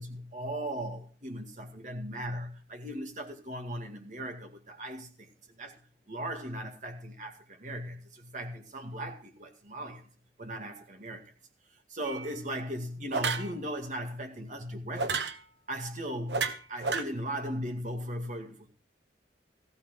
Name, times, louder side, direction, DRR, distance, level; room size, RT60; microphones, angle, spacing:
voice 1, 0.0-5.3 5.6-5.8 6.1-10.1 10.4-11.3 11.9-15.3 15.7-18.7, equal, 45° right, 2.2 m, -38 dB
sound 1, 12.1-12.3 13.1-13.5 15.0-15.4 16.3-17.0, right 4 dB, 85° right, 1.3 m, -30 dB
15.5 x 8.1 x 5.9 m
head